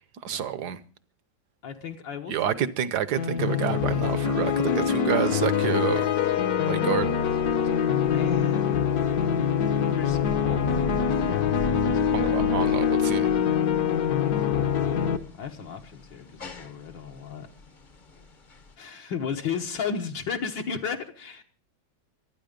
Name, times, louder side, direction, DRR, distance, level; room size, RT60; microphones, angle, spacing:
voice 1, 0.2-0.8 2.3-6.1 6.7-7.1 12.1-13.3, right 9 dB, 60° right, 1.4 m, -28 dB
voice 2, 1.6-2.7 8.1-8.9 10.0-10.6 11.1-12.3 14.3-17.5 18.8-21.4, left 6 dB, 70° left, 2.0 m, -35 dB
sound 1, 3.2-15.2, left 8 dB, 55° left, 1.4 m, -24 dB
sound 2, 3.5-18.8, left 3 dB, 35° left, 0.9 m, -41 dB
24.5 x 9.6 x 5.2 m
omnidirectional pair, 2.1 m